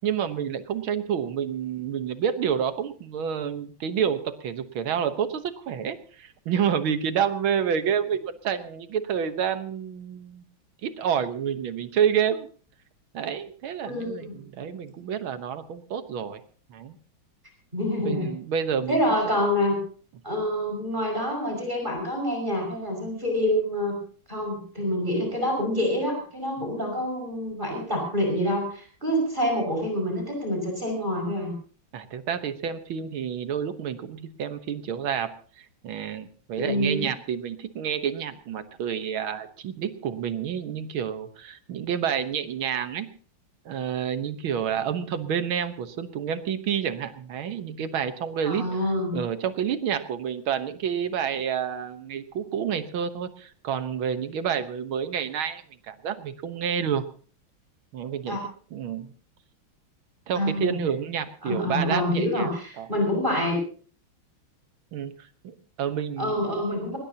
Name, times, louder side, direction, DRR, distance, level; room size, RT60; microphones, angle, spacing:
voice 1, 0.0-10.4 10.8-12.5 13.1-16.4 16.7-17.0 18.1-19.2 31.9-35.3 35.6-43.1 43.7-48.8 49.1-57.0 57.9-58.4 58.7-59.1 60.3-62.5 62.8-62.9 64.9-65.1 65.4-66.5, right 8 dB, 75° right, 10 dB, 2.0 m, -29 dB
voice 2, 13.8-14.4 17.7-18.3 18.9-19.8 20.2-24.0 24.3-31.5 36.6-37.1 48.4-49.2 58.3-58.4 60.4-60.8 61.4-63.6 66.2-67.0, equal, 20° right, 1 dB, 6.0 m, -27 dB
20.0 x 20.0 x 2.9 m, 0.42 s
omnidirectional pair, 2.3 m